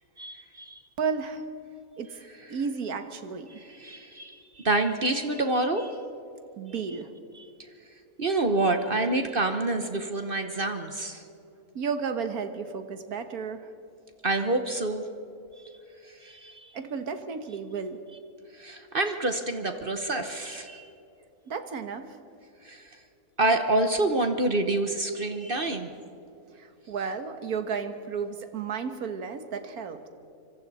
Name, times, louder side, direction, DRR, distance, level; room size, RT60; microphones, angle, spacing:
voice 1, 0.2-0.8 3.8-4.4 4.6-5.9 8.2-11.2 14.2-15.0 16.2-16.7 18.6-20.9 22.7-22.8 23.4-25.9, right 2 dB, 40° right, 7 dB, 1.1 m, -27 dB
voice 2, 1.0-1.4 2.0-2.1 2.5-3.5 6.6-7.1 11.8-13.7 16.7-18.0 21.5-22.2 26.6-30.1, right 5 dB, 90° right, 8 dB, 1.8 m, -33 dB
25.5 x 25.0 x 4.2 m, 2.8 s
omnidirectional pair, 1.5 m